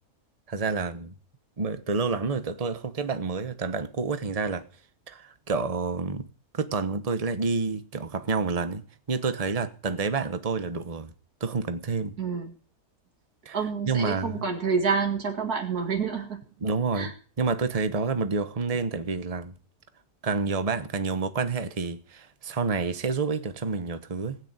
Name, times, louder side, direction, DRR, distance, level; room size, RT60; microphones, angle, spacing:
voice 1, 0.5-1.1 1.6-4.7 5.1-6.3 6.5-11.1 11.4-12.1 13.4-13.6 13.8-14.4 16.6-17.1 17.4-19.5 20.2-24.4, right 4 dB, 25° right, 1.1 m, -29 dB
voice 2, 12.2-12.5 13.5-16.4 17.0-17.1, right 5 dB, 90° right, 2.7 m, -28 dB
19.5 x 6.5 x 8.9 m
omnidirectional pair, 1.5 m